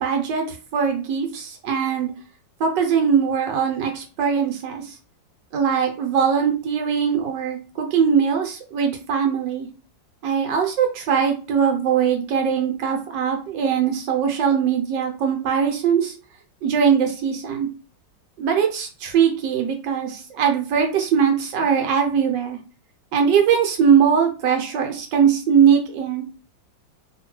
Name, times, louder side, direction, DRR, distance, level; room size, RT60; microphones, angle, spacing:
voice 1, 0.0-2.1 2.6-4.9 5.5-9.7 10.2-16.1 16.6-17.7 18.4-22.6 23.1-26.2, right 7 dB, 75° right, 3 dB, 1.3 m, -21 dB
2.8 x 2.6 x 3.0 m, 0.35 s
omnidirectional pair, 2.0 m